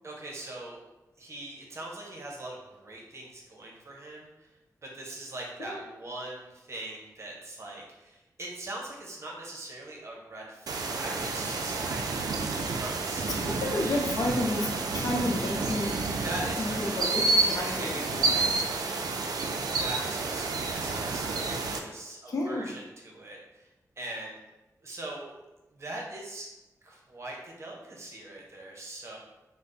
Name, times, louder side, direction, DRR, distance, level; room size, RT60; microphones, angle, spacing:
voice 1, 0.0-0.8 1.2-4.5 4.8-12.3 12.7-14.0 16.2-17.1 17.5-19.0 19.3-23.7 24.0-24.4 24.8-25.4 25.7-26.5 26.8-29.2, right 1 dB, 45° right, -2 dB, 0.7 m, -41 dB
sound 1, 10.7-21.8, right 3 dB, 90° right, 0.3 m, -30 dB
voice 2, 13.4-14.7 14.9-15.9 16.6-18.2 22.3-22.6, left 1 dB, 70° left, 0 dB, 0.6 m, -31 dB
3.3 x 2.0 x 3.9 m, 1.0 s
wide cardioid pair, 130°, 6 cm